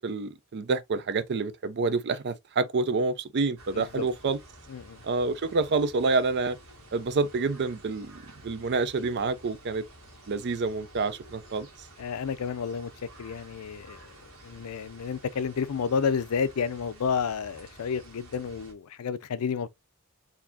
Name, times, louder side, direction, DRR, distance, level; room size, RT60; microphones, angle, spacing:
voice 1, 0.0-4.4 5.0-6.6 6.9-9.8 10.3-11.7, right 4 dB, 50° right, 0.5 m, -28 dB
sound 1, 3.6-18.7, right 1 dB, 75° right, 1.5 m, -51 dB
voice 2, 3.7-4.1 4.7-5.0 12.0-12.9 13.2-14.1 14.4-19.7, left 6 dB, 75° left, 0.4 m, -30 dB
4.2 x 2.7 x 2.6 m
head